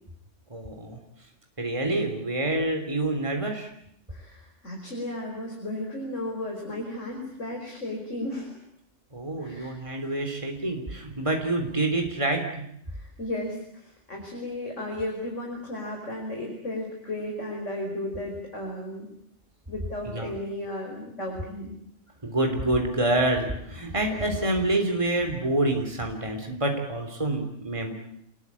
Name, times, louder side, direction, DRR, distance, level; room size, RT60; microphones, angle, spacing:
voice 1, 0.5-1.0 1.6-3.7 9.1-12.5 20.1-20.3 22.2-27.9, right 2 dB, 25° right, 4 dB, 3.5 m, -27 dB
voice 2, 4.1-8.6 9.4-9.8 12.9-19.1 19.7-21.7, left 1 dB, 85° left, 1 dB, 5.3 m, -34 dB
29.0 x 21.0 x 8.6 m, 0.72 s
omnidirectional pair, 1.2 m